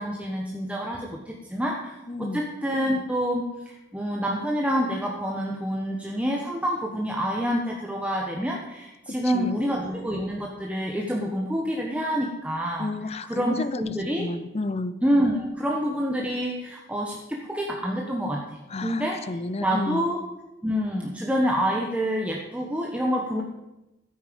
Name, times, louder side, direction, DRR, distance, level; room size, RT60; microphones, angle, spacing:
voice 1, 0.0-12.9 13.3-14.3 15.0-18.4 18.8-19.2 19.6-20.2 20.6-23.4, equal, 5° right, -1 dB, 1.1 m, -27 dB
voice 2, 2.1-2.5 9.1-9.6 12.8-15.0 18.7-20.1, left 2 dB, 30° left, 13 dB, 0.6 m, -32 dB
15.0 x 8.8 x 5.3 m, 0.99 s
head